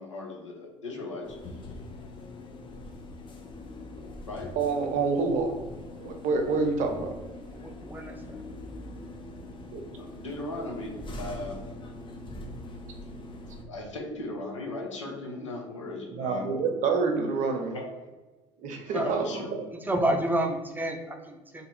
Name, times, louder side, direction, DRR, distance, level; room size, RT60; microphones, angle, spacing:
voice 1, 0.0-1.4 1.6-1.7 4.3-4.5 10.0-11.6 13.7-16.5 17.7-17.9 18.9-19.5, left 2 dB, 90° left, -1 dB, 0.6 m, -37 dB
sound 1, 1.2-13.6, left 2 dB, 30° left, 0.6 m, -42 dB
voice 2, 4.6-5.5 6.0-7.1 9.7-9.8 16.1-17.7 18.6-19.4, right 4 dB, 55° right, 4 dB, 0.6 m, -27 dB
voice 3, 7.5-8.4 18.9-19.2 19.8-21.7, right 1 dB, 10° right, 3 dB, 0.6 m, -29 dB
2.6 x 2.5 x 4.2 m, 1.2 s
figure-of-eight pair, 60°, 15 cm